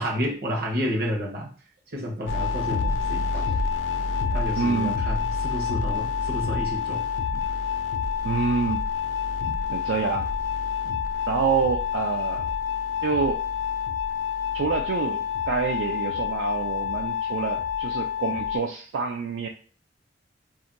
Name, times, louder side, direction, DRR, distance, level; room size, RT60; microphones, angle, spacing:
voice 1, 0.0-1.5 1.9-3.7 4.0-7.1 7.3-7.5 9.4-9.6 10.8-11.0, equal, 55° right, 0 dB, 0.8 m, -31 dB
sound 1, 2.3-18.6, left 6 dB, 70° left, 0.4 m, -28 dB
voice 2, 4.6-5.0 8.2-8.9 9.7-10.3 11.3-12.4 13.0-13.4 14.5-19.5, right 5 dB, 80° right, 3 dB, 0.3 m, -27 dB
2.4 x 2.2 x 3.8 m, 0.41 s
head